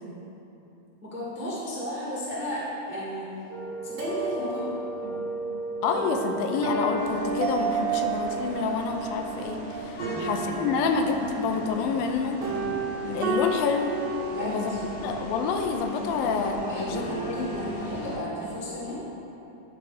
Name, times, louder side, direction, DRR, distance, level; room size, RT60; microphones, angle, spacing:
voice 1, 1.0-3.3 3.8-4.6 10.0-10.3 14.2-14.8 16.1-19.0, equal, 10° right, -8 dB, 0.6 m, -34 dB
sound 1, 3.5-18.7, right 2 dB, 75° right, 2.6 m, -34 dB
voice 2, 5.8-12.4 13.0-13.9 14.4-17.5, left 5 dB, 85° left, 5 dB, 2.4 m, -28 dB
sound 2, 7.0-18.2, left 2 dB, 65° left, 1.6 m, -42 dB
sound 3, 7.4-11.1 11.5-11.6, right 8 dB, 90° right, 2.4 m, -32 dB
11.0 x 4.5 x 4.8 m, 3.0 s
omnidirectional pair, 4.0 m